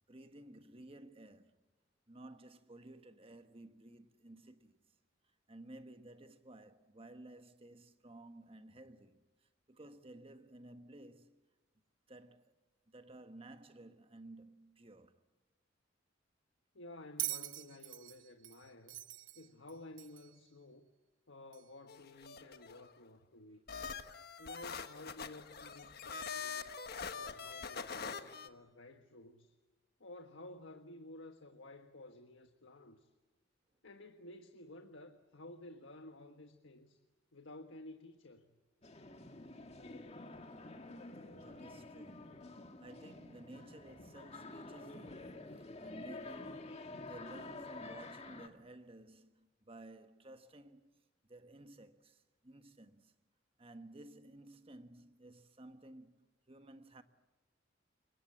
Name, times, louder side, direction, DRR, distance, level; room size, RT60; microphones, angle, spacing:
voice 1, 0.1-1.5 2.1-4.8 5.5-11.4 12.1-12.5 12.9-15.2 41.4-53.1 53.6-57.0, right 1 dB, 30° right, 1.4 m, -55 dB
voice 2, 16.7-19.0 19.3-20.9 21.3-23.6 24.4-26.8 27.2-29.5 30.0-33.1 33.8-37.0 37.3-38.5, left 2 dB, 90° left, 1.5 m, -53 dB
Bell, 17.2-20.4 21.5-21.6, right 15 dB, 90° right, 0.9 m, -43 dB
sound 1, 21.9-22.9 23.7-28.5, left 5 dB, 55° left, 1.4 m, -44 dB
sound 2, 38.8-48.5, left 2 dB, 35° left, 2.0 m, -49 dB
28.0 x 24.0 x 8.6 m
head